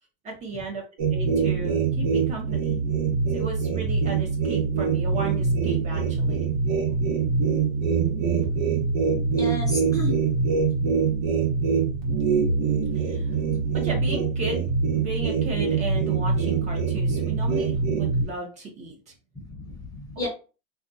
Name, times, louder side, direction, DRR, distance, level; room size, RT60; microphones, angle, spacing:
voice 1, 0.2-0.8 1.1-2.8 3.3-6.4 13.0-13.3 13.7-14.7 14.9-19.1 20.2-20.3, right 3 dB, 25° right, 0 dB, 0.6 m, -35 dB
sound 1, 1.0-18.2, right 5 dB, 60° right, 1.1 m, -24 dB
voice 2, 9.4-10.2 19.4-20.3, left 1 dB, 15° left, 0 dB, 0.7 m, -33 dB
2.4 x 2.2 x 2.6 m, 0.34 s
supercardioid pair, 140°, 29 cm